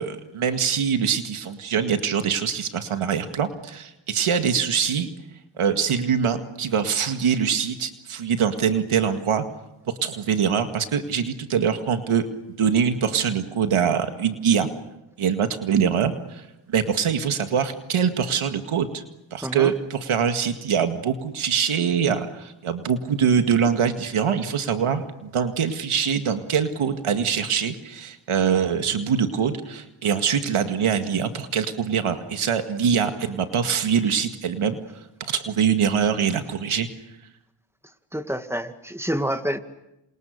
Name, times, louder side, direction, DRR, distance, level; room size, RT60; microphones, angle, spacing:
voice 1, 0.0-5.1 5.6-9.4 10.0-12.3 12.6-14.7 15.2-19.0 19.3-34.8 35.2-36.9, right 7 dB, 85° right, 7 dB, 2.1 m, -23 dB
voice 2, 19.4-19.7 38.1-39.6, equal, 5° right, 8 dB, 2.1 m, -28 dB
28.0 x 28.0 x 6.7 m, 0.93 s
cardioid pair, 60°, 49 cm